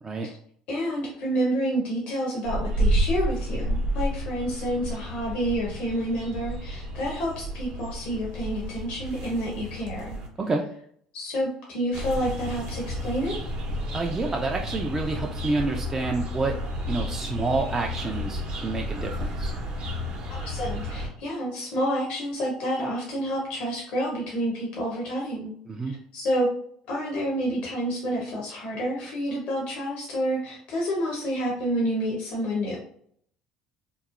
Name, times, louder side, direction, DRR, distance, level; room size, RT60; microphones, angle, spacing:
voice 1, 0.7-10.2 11.1-13.3 20.3-25.5 26.1-26.5 26.9-32.8, equal, 60° left, -2 dB, 0.7 m, -29 dB
sound 1, 2.4-10.3 11.9-21.1, equal, 55° right, 0.7 m, -31 dB
voice 2, 13.9-16.5 16.9-19.5 25.7-25.9, right 3 dB, 25° right, 1 dB, 0.3 m, -28 dB
2.9 x 2.0 x 2.4 m, 0.63 s
hypercardioid pair, 70°, 2 cm